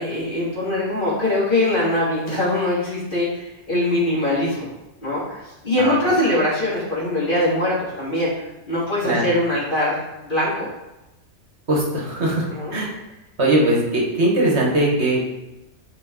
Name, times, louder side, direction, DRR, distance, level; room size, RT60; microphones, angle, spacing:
voice 1, 0.0-4.7 5.0-10.7 12.5-12.7, left 1 dB, 45° left, -8 dB, 3.2 m, -22 dB
voice 2, 11.7-12.5 12.7-12.9 13.4-15.2, right 1 dB, 65° right, -2 dB, 1.9 m, -20 dB
8.6 x 5.3 x 4.1 m, 0.98 s
omnidirectional pair, 1.2 m